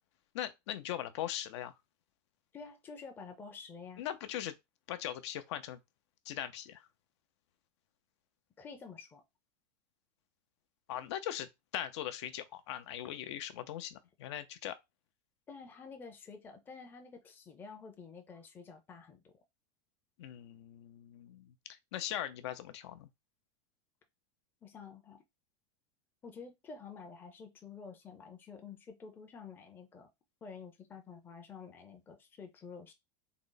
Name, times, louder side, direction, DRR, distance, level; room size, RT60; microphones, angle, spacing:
voice 1, 0.3-1.7 4.0-4.6 4.9-5.8 6.3-6.9 10.9-14.8 20.2-23.1, left 11 dB, 65° left, 0.6 m, -40 dB
voice 2, 2.5-4.0 8.6-9.2 15.5-19.2 24.6-25.2 26.2-30.1 30.4-32.9, left 5 dB, 15° left, 0.5 m, -49 dB
3.8 x 2.0 x 3.8 m
supercardioid pair, 170°, 15 cm